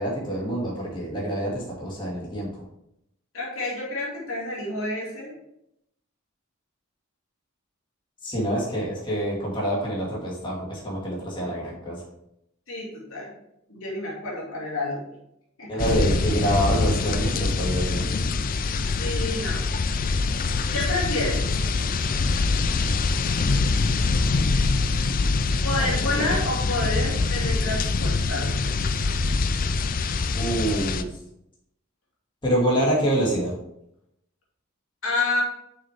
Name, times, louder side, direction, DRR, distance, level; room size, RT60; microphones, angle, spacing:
voice 1, 0.0-2.5 8.2-12.0 15.7-18.1 25.8-26.2 30.4-31.2 32.4-33.5, right 1 dB, 25° left, -5 dB, 2.2 m, -26 dB
voice 2, 3.3-5.4 8.4-8.6 12.7-13.3 13.7-15.0 15.6-15.8 19.0-19.7 20.7-21.5 25.6-28.7 35.0-35.4, left 2 dB, 70° left, -3 dB, 2.5 m, -29 dB
sound 1, 15.8-31.0, left 3 dB, 40° left, 0.4 m, -24 dB
6.5 x 6.3 x 3.5 m, 0.79 s
head